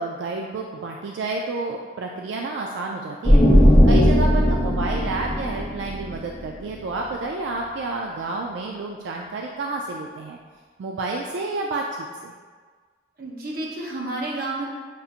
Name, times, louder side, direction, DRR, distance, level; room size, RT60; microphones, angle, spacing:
voice 1, 0.0-10.4 10.8-12.3, right 3 dB, 75° right, 0 dB, 0.3 m, -30 dB
sound 1, 3.2-6.9, equal, 20° left, 0.7 m, -17 dB
voice 2, 3.9-4.4 13.2-14.7, right 2 dB, 50° right, -4 dB, 0.8 m, -31 dB
6.6 x 2.4 x 2.7 m, 1.5 s
head